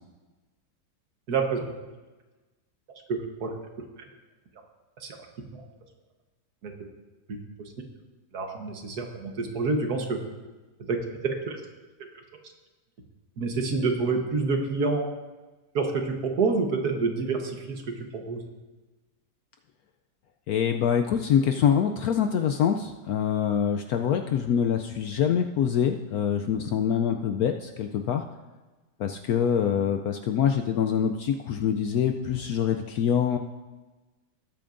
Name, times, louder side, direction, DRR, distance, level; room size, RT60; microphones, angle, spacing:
voice 1, 1.3-1.7 3.1-3.5 5.0-5.2 5.5-5.6 6.6-6.7 8.3-10.2 10.9-11.0 11.2-11.6 13.4-15.1 15.8-18.4, right 4 dB, 60° right, 3 dB, 1.6 m, -27 dB
voice 2, 20.5-28.2 29.0-33.4, left 8 dB, 70° left, 6 dB, 0.9 m, -25 dB
19.5 x 8.7 x 2.6 m, 1.2 s
omnidirectional pair, 1.9 m